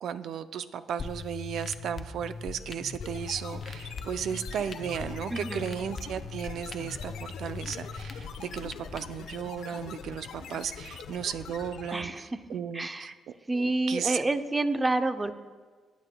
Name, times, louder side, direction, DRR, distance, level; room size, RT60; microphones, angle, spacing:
voice 1, 0.0-13.1 13.5-14.2, right 8 dB, 70° right, 12 dB, 0.4 m, -35 dB
sound 1, 1.0-9.0, left 4 dB, 40° left, 0.6 m, -41 dB
sound 2, 3.0-12.2, left 6 dB, 80° left, 0.8 m, -44 dB
voice 2, 5.3-5.6 11.9-12.3 12.7-13.1 13.5-15.3, right 2 dB, 20° right, 9 dB, 0.7 m, -28 dB
20.5 x 8.2 x 2.2 m, 1.5 s
cardioid pair, 90°, 0 cm